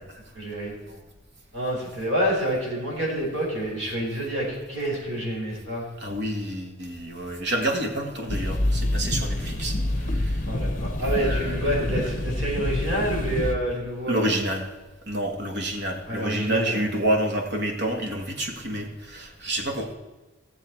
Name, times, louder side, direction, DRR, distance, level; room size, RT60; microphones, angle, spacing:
voice 1, 0.3-1.0 1.5-5.8 10.5-14.3 16.1-16.9, right 1 dB, 80° right, -3 dB, 4.5 m, -28 dB
voice 2, 6.0-10.4 11.1-11.8 14.1-14.6 15.1-19.9, right 1 dB, 60° right, 3 dB, 1.7 m, -28 dB
sound 1, 8.3-13.6, left 1 dB, 45° left, 1.0 m, -27 dB
16.5 x 7.1 x 4.6 m, 1.2 s
head